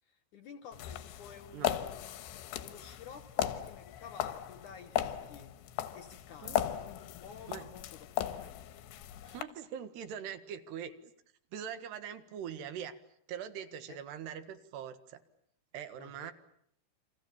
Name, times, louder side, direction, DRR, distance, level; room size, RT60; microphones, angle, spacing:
voice 1, 0.0-5.5 5.9-8.6 13.9-14.0 15.9-16.3, left 7 dB, 65° left, 9 dB, 2.1 m, -52 dB
sound 1, 0.7-9.4, left 12 dB, 85° left, 3.4 m, -37 dB
voice 2, 9.3-11.1 11.5-13.0 13.3-15.2 15.7-16.3, right 8 dB, 80° right, 10 dB, 3.6 m, -42 dB
29.5 x 25.5 x 7.2 m, 0.71 s
omnidirectional pair, 4.8 m